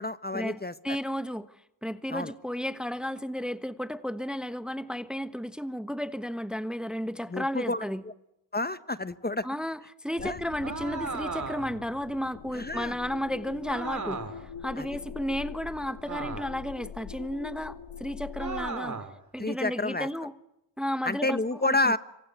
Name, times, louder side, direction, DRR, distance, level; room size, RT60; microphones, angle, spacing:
voice 1, 0.0-1.0 2.1-2.3 7.3-7.8 8.5-9.5 10.2-10.4 12.5-13.0 14.8-14.9 19.4-20.1 21.0-22.0, left 2 dB, 20° left, 1.3 m, -29 dB
voice 2, 0.8-1.5 1.8-8.0 9.4-19.0 19.3-20.3 20.8-21.9, equal, ahead, 1.2 m, -33 dB
sound 1, 10.2-18.7, left 7 dB, 75° left, 2.4 m, -43 dB
sound 2, 10.6-11.8 13.7-14.5 16.0-16.7 18.4-19.2, right 4 dB, 35° right, 3.9 m, -36 dB
26.5 x 24.5 x 8.3 m
supercardioid pair, 50°, 47 cm